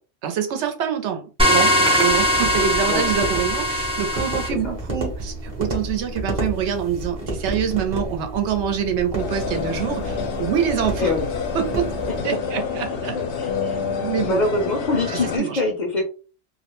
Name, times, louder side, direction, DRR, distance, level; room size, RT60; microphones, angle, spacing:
voice 1, 0.2-11.1 11.5-11.9 12.2-13.2 13.8-14.4 15.1-15.6, right 8 dB, 80° right, 0.8 m, -25 dB
sound 1, 1.4-4.5, left 1 dB, 10° right, 0.3 m, -20 dB
sound 2, 2.1-12.2, right 1 dB, 35° right, 0.8 m, -31 dB
sound 3, 9.2-15.4, left 6 dB, 75° left, 0.9 m, -28 dB
voice 2, 13.4-13.8 14.2-16.1, left 2 dB, 55° left, 0.6 m, -24 dB
2.2 x 2.0 x 2.9 m
omnidirectional pair, 1.2 m